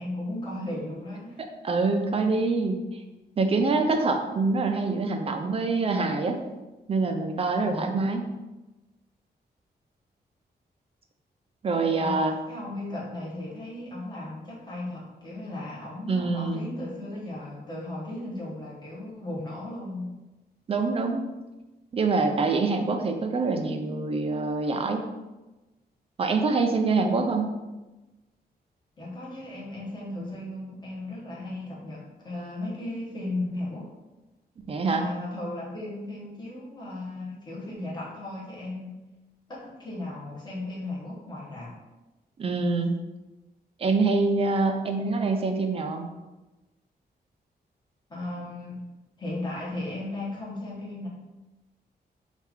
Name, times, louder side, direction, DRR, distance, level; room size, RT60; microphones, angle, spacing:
voice 1, 0.0-1.4 2.2-2.3 7.6-8.0 11.9-20.2 29.0-33.9 34.9-39.0 39.5-41.8 48.1-48.9 49.2-51.1, left 1 dB, 25° left, -6 dB, 1.1 m, -36 dB
voice 2, 1.6-2.8 3.4-6.4 6.9-8.2 11.6-12.3 16.1-16.7 20.7-21.2 21.9-25.0 26.2-27.5 34.7-35.0 42.4-42.9 43.8-46.1, right 3 dB, 35° right, 5 dB, 0.4 m, -25 dB
4.3 x 2.4 x 3.5 m, 1.1 s
wide cardioid pair, 165°, 17 cm